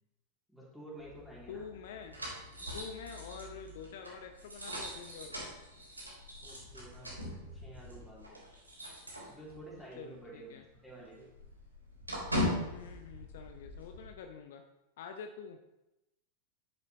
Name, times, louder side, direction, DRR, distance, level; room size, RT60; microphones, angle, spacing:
voice 1, 0.5-1.6 6.4-8.4 9.3-11.3, right 1 dB, ahead, -7 dB, 3.5 m, -51 dB
sound 1, 1.0-9.8 10.1-10.3 10.6-14.1, left 1 dB, 80° right, 3.1 m, -41 dB
voice 2, 1.5-2.2 2.6-5.5 10.0-10.6 12.7-14.6 15.0-15.7, left 6 dB, 55° left, 5 dB, 0.7 m, -47 dB
10.5 x 7.3 x 3.3 m, 0.93 s
figure-of-eight pair, 90°, 0 cm